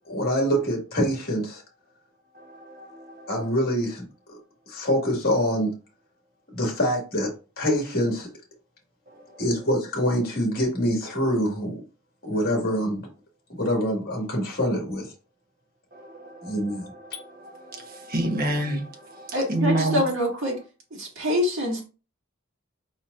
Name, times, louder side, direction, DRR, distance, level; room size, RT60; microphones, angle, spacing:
voice 1, 0.1-1.6 3.3-4.0 4.3-4.4 4.7-5.7 6.5-8.3 9.4-11.8 12.2-13.1 13.6-15.1 16.4-16.8, equal, 45° left, 1.8 m, -25 dB
voice 2, 2.3-3.4 9.1-9.4 15.9-20.0, right 1 dB, 45° right, 1.1 m, -30 dB
voice 3, 19.3-20.6 21.0-21.8, left 1 dB, 60° right, 2.1 m, -25 dB
4.9 x 4.3 x 2.5 m
head